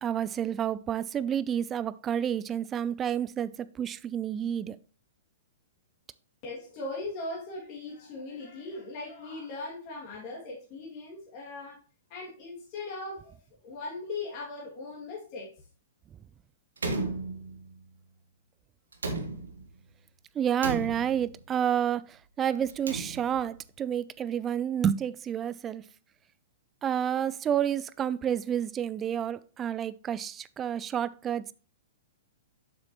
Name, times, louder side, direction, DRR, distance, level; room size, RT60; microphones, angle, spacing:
voice 1, 0.0-4.8 20.4-25.8 26.8-31.5, right 9 dB, 20° right, 0.4 m, -30 dB
voice 2, 6.4-11.8 12.1-13.3 13.6-15.5, left 3 dB, 40° left, 2.3 m, -39 dB
Slam, 16.8-17.9 18.9-19.8 20.6-21.5 22.6-23.6, right 3 dB, 80° right, 1.4 m, -35 dB
7.8 x 6.3 x 3.0 m
figure-of-eight pair, 110°, 0 cm